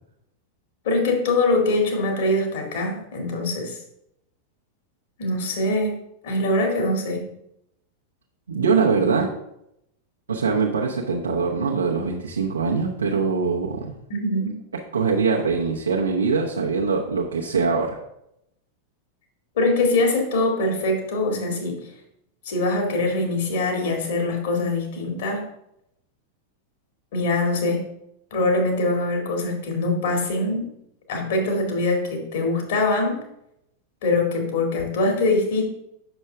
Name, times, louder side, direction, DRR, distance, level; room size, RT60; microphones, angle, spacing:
voice 1, 0.8-3.8 5.2-5.9 6.2-7.3 14.1-14.6 19.6-21.9 22.5-25.5 27.1-27.9 28.3-30.7 31.1-33.2 34.0-35.6, left 2 dB, 55° left, 1 dB, 2.1 m, -23 dB
voice 2, 8.5-9.3 10.3-13.9 14.9-18.0, right 5 dB, 75° right, -2 dB, 0.9 m, -23 dB
8.1 x 6.4 x 3.4 m, 0.80 s
figure-of-eight pair, 90°, 0 cm